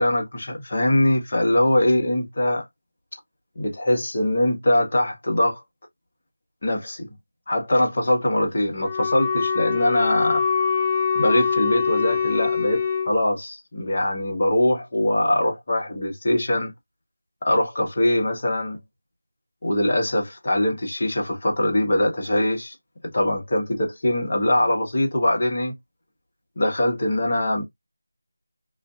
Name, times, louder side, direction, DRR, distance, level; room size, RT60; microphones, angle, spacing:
voice 1, 0.0-2.6 3.6-5.6 6.6-7.1 7.5-10.4 11.1-16.7 17.4-18.8 19.6-22.7 23.1-25.7 26.6-27.6, left 1 dB, 40° left, 1.0 m, -22 dB
Wind instrument woodwind instrument, 8.8-13.1, left 6 dB, 20° left, 0.3 m, -23 dB
2.5 x 2.4 x 2.4 m
figure-of-eight pair, 170°, 0 cm